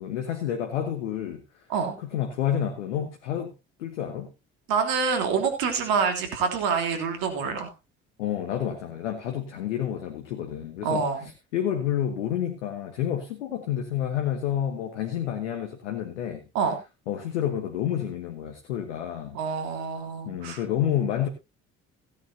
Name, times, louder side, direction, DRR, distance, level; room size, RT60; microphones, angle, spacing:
voice 1, 0.0-1.4 2.0-3.5 3.8-4.3 8.2-16.4 17.1-19.4 20.2-21.3, left 10 dB, 85° left, 4 dB, 1.4 m, -29 dB
voice 2, 4.7-7.7 10.8-11.2 16.5-16.8 19.3-20.6, right 5 dB, 75° right, 5 dB, 3.4 m, -26 dB
16.5 x 9.5 x 2.8 m, 0.25 s
hypercardioid pair, 50°, 35 cm